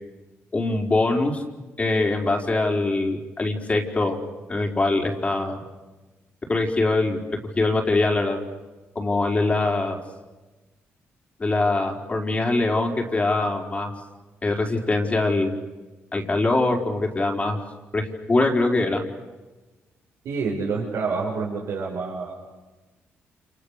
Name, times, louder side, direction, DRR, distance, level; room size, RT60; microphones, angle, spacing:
voice 1, 0.5-1.4 1.8-4.2 4.5-5.6 6.5-7.2 7.6-8.4 8.9-10.0 11.4-13.9 14.4-15.5 16.1-17.6 17.9-19.0, left 2 dB, 25° left, 1 dB, 4.7 m, -23 dB
voice 2, 20.2-22.3, right 4 dB, 80° right, -5 dB, 7.0 m, -27 dB
30.0 x 28.5 x 6.8 m, 1.2 s
cardioid pair, 90°, 5 cm